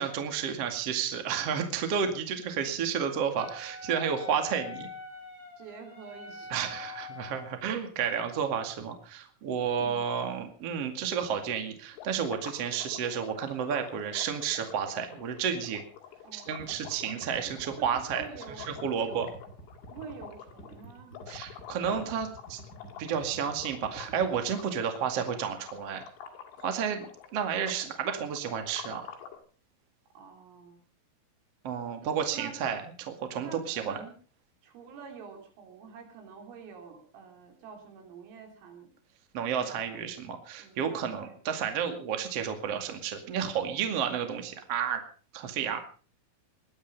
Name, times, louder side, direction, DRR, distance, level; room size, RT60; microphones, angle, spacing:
voice 1, 0.0-4.9 6.5-15.8 16.3-18.2 18.6-19.3 21.3-22.6 23.0-26.0 26.6-29.1 31.6-34.0 39.3-45.0 45.3-45.8, right 7 dB, 45° right, 6 dB, 2.1 m, -31 dB
Wind instrument woodwind instrument, 3.4-7.5, left 5 dB, 30° right, 6.9 m, -44 dB
voice 2, 5.6-6.7 9.8-10.3 16.2-16.7 17.4-19.2 19.9-21.2 22.0-22.7 30.2-30.8 32.3-32.6 33.4-34.1 34.6-38.9 39.4-40.3 40.6-41.4, right 5 dB, 75° right, 4 dB, 6.0 m, -48 dB
sound 1, 12.0-29.4, left 8 dB, 70° left, 4.6 m, -47 dB
sound 2, 16.6-24.5, right 1 dB, 20° left, 3.8 m, -49 dB
20.0 x 11.5 x 5.4 m, 0.41 s
omnidirectional pair, 6.0 m